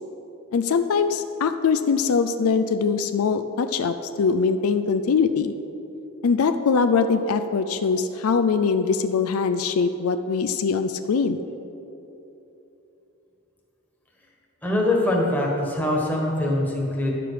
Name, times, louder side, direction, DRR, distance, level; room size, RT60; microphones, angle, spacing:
voice 1, 0.5-5.5 6.2-11.4, left 5 dB, 75° left, 9 dB, 0.4 m, -22 dB
voice 2, 14.6-17.1, left 1 dB, 10° left, -2 dB, 1.4 m, -23 dB
11.0 x 6.8 x 5.0 m, 3.0 s
head